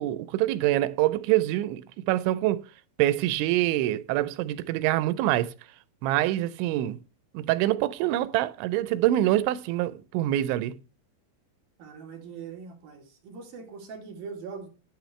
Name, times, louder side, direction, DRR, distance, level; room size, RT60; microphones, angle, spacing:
voice 1, 0.0-2.6 3.0-5.5 6.0-7.0 7.3-10.8, right 14 dB, 90° right, 3.0 m, -25 dB
voice 2, 11.8-14.7, right 5 dB, 55° right, 4.0 m, -41 dB
12.0 x 10.5 x 3.2 m
omnidirectional pair, 5.2 m